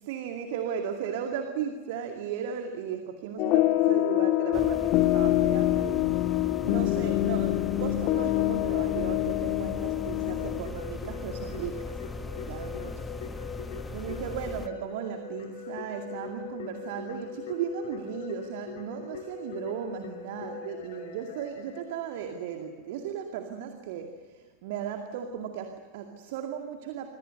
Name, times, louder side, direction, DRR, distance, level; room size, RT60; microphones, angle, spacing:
voice 1, 0.0-12.0 12.4-13.0 13.9-27.1, right 8 dB, 50° right, 5 dB, 2.2 m, -36 dB
sound 1, 3.4-10.6, left 16 dB, 40° left, 1.4 m, -25 dB
sound 2, 4.5-14.7, left 3 dB, 10° left, 1.3 m, -39 dB
Keyboard (musical), 10.3-22.7, left 6 dB, 60° left, 4.5 m, -41 dB
27.0 x 24.5 x 6.7 m, 1.3 s
figure-of-eight pair, 90°, 0 cm